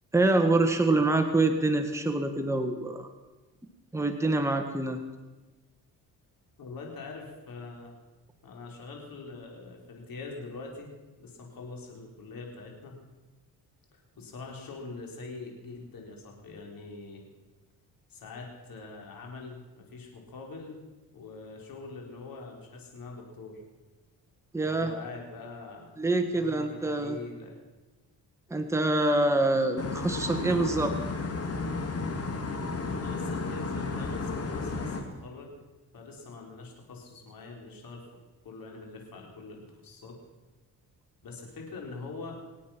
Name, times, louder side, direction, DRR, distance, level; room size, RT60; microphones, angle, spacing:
voice 1, 0.1-3.1 3.9-5.0 24.5-24.9 26.0-27.2 28.5-30.9, right 2 dB, 10° right, 5 dB, 1.5 m, -25 dB
voice 2, 6.6-7.9 8.4-10.9 11.2-13.0 13.9-17.2 18.1-20.8 21.1-23.6 24.6-25.9 26.3-27.6 29.5-29.7 32.9-35.5 35.9-38.1 38.4-40.2 41.2-42.4, left 3 dB, 65° left, 0 dB, 4.7 m, -44 dB
sound 1, 29.8-35.0, left 3 dB, 40° left, 2.6 m, -33 dB
25.5 x 8.7 x 6.0 m, 1.2 s
cardioid pair, 95°, 37 cm